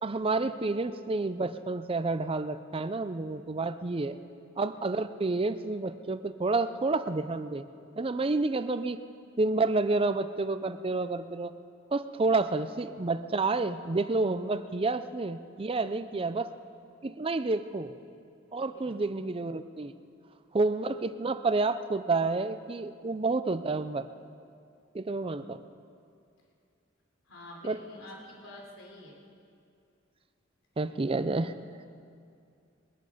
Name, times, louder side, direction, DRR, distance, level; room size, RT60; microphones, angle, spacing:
voice 1, 0.0-4.2 4.6-7.7 8.0-9.0 9.4-11.5 11.9-16.5 17.0-17.9 18.5-19.9 20.5-24.1 24.9-25.6 27.6-27.8 30.8-31.5, right 3 dB, 30° right, 12 dB, 0.5 m, -29 dB
voice 2, 18.7-19.2 27.2-29.2, left 1 dB, 85° left, -1 dB, 3.4 m, -49 dB
22.0 x 10.5 x 5.0 m, 2.4 s
head